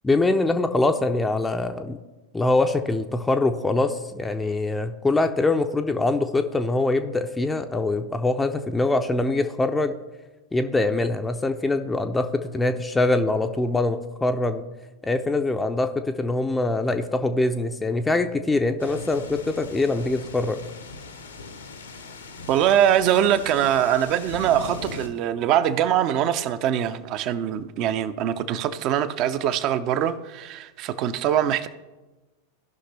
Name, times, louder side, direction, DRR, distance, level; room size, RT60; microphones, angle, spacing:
voice 1, 0.0-2.0 2.3-9.9 10.5-14.6 15.0-20.6, left 2 dB, 10° left, 0.5 m, -23 dB
sound 1, 18.8-25.1, left 3 dB, 70° left, 1.0 m, -39 dB
voice 2, 22.5-31.7, right 10 dB, 40° right, 0.6 m, -23 dB
16.0 x 5.8 x 3.2 m
figure-of-eight pair, 90°, 0 cm